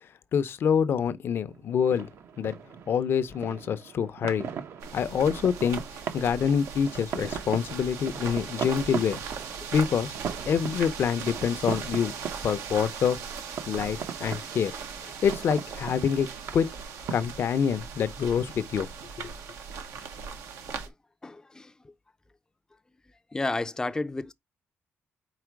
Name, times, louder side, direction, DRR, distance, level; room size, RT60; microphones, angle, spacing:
voice 1, 0.3-2.1 2.4-2.5 2.9-4.5 4.9-5.8 6.1-9.2 9.7-10.1 10.5-12.1 12.4-13.2 13.7-14.7 15.0-16.3 16.5-16.7 17.1-18.9 19.2-19.3, left 7 dB, 55° left, 0.7 m, -26 dB
sound 1, 1.5-20.8, right 7 dB, 70° right, 1.0 m, -40 dB
sound 2, 4.8-20.9, right 6 dB, 90° right, 1.4 m, -39 dB
voice 2, 21.2-21.9 23.3-24.3, left 2 dB, 15° left, 0.5 m, -32 dB
4.9 x 4.3 x 4.6 m
cardioid pair, 130°, 5 cm